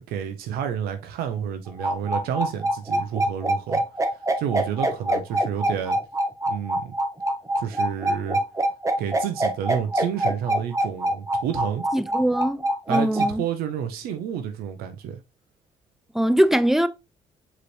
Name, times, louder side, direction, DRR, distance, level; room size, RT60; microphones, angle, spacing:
voice 1, 0.0-3.8 4.4-6.0 6.5-7.0 7.6-8.4 9.0-11.8 12.9-15.2, right 8 dB, 85° right, 0.5 m, -30 dB
sound 1, 1.7-13.3, right 1 dB, 20° right, 0.9 m, -24 dB
voice 2, 11.9-13.4 16.1-16.9, right 1 dB, ahead, 0.4 m, -22 dB
5.0 x 3.1 x 3.1 m
supercardioid pair, 65°, 15 cm